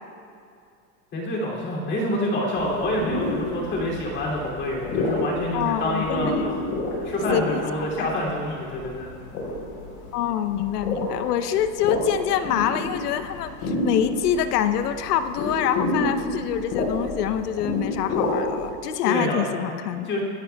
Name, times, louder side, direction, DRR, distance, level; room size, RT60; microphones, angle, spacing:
voice 1, 1.1-6.3 7.0-9.1 19.0-19.4 20.0-20.2, left 1 dB, 25° left, -3 dB, 2.8 m, -27 dB
sound 1, 2.6-18.7, left 2 dB, 45° left, 3.9 m, -30 dB
voice 2, 5.5-6.5 7.3-7.6 8.0-8.1 10.1-20.1, left 10 dB, 85° left, 9 dB, 0.9 m, -25 dB
26.5 x 13.0 x 2.3 m, 2.5 s
supercardioid pair, 160°, 46 cm